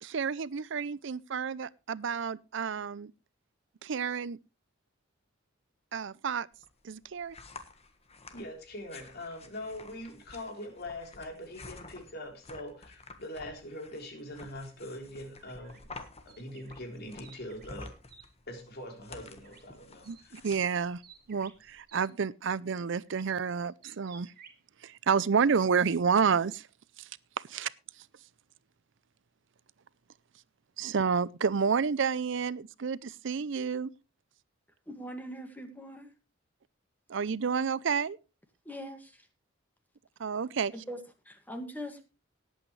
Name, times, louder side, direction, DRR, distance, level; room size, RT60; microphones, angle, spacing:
voice 1, 0.0-3.1 3.8-4.4 5.9-6.5 6.8-7.4 20.1-21.0 21.3-24.3 24.8-26.7 27.0-28.3 30.8-33.9 37.1-38.2 40.2-40.7, right 6 dB, 65° right, 0.5 m, -30 dB
sound 1, 6.5-21.8, left 3 dB, 35° left, 1.4 m, -51 dB
voice 2, 8.3-15.8 16.3-17.9 18.5-20.4, left 1 dB, 55° left, 3.8 m, -42 dB
sound 2, 15.4-18.3 19.4-19.8 20.0-22.1 23.1-24.6, right 7 dB, 50° right, 2.5 m, -56 dB
voice 3, 34.9-36.1 38.7-39.2 40.9-41.0 41.3-42.1, equal, 10° left, 1.9 m, -41 dB
19.0 x 8.7 x 3.2 m
head